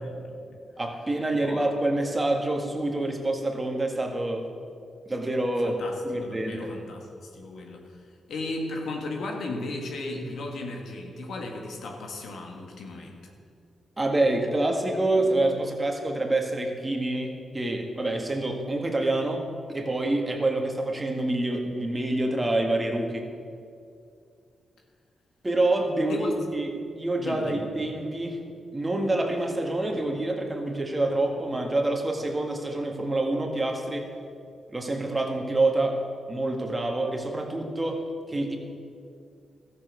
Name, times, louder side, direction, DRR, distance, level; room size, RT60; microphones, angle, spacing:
voice 1, 0.0-0.6 1.3-1.6 5.6-7.8 8.3-13.3 26.0-26.3 27.2-27.6, left 2 dB, 80° left, 1 dB, 1.7 m, -36 dB
voice 2, 0.8-4.5 5.1-6.7 14.0-19.4 19.7-23.3 25.4-28.4 28.7-34.1 34.7-36.0 36.3-38.6, right 2 dB, 25° right, 2 dB, 1.9 m, -27 dB
13.5 x 7.2 x 6.3 m, 2.3 s
cardioid pair, 55°, 0 cm